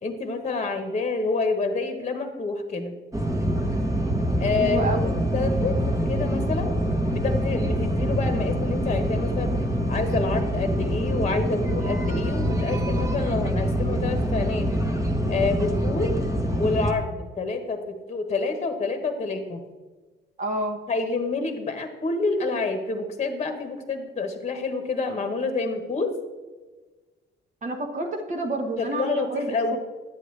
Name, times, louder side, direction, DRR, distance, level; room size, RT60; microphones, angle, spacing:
voice 1, 0.0-2.9 4.4-6.7 7.1-9.5 9.9-14.7 15.3-16.2 16.6-19.6 20.9-26.1 28.8-29.8, left 3 dB, 35° left, 7 dB, 1.1 m, -28 dB
sound 1, 3.1-16.9, equal, 15° right, 1.1 m, -25 dB
voice 2, 4.6-5.1 20.4-20.8 27.6-29.8, right 2 dB, 40° right, 2 dB, 1.1 m, -29 dB
10.0 x 7.8 x 3.2 m, 1.3 s
cardioid pair, 90°, 20 cm